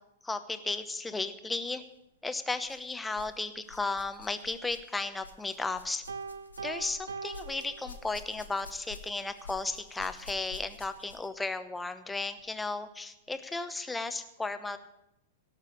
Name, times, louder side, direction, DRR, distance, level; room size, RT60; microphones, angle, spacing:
voice 1, 0.2-1.8 2.2-6.0 6.6-14.8, left 3 dB, 10° left, 10 dB, 0.9 m, -34 dB
sound 1, 1.7-1.9 2.6-3.4 3.6-11.4 12.4-12.5 13.3-13.4, left 5 dB, 85° left, 1.3 m, -50 dB
Piano, 6.1-8.5, right 5 dB, 75° right, 0.5 m, -42 dB
17.0 x 6.7 x 6.5 m, 0.87 s
figure-of-eight pair, 100°, 0 cm